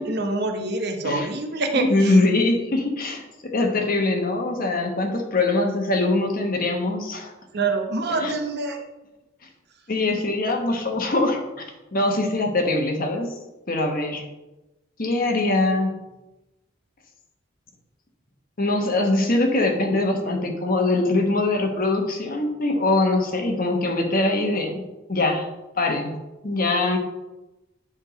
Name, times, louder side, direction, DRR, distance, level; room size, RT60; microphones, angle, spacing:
voice 1, 0.0-2.2 7.5-8.8, right 3 dB, 55° right, 4 dB, 0.9 m, -26 dB
voice 2, 1.8-7.3 8.2-8.3 9.9-11.7 11.9-13.3 13.7-14.2 15.0-15.9 18.6-25.5 25.8-26.2 26.4-27.0, left 2 dB, 45° left, 3 dB, 1.1 m, -22 dB
9.4 x 3.6 x 5.1 m, 1.0 s
head